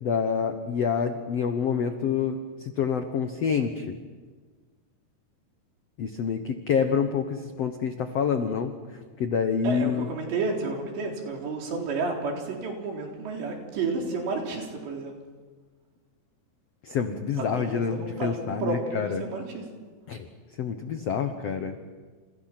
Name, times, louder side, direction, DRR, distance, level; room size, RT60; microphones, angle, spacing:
voice 1, 0.0-3.9 6.0-8.7 9.2-10.1 16.8-19.2 20.1-20.3 20.6-21.8, left 6 dB, 80° left, 7 dB, 1.4 m, -27 dB
voice 2, 9.6-15.2 17.4-19.6, right 4 dB, 90° right, 1 dB, 6.1 m, -31 dB
29.5 x 28.0 x 6.0 m, 1.4 s
omnidirectional pair, 4.9 m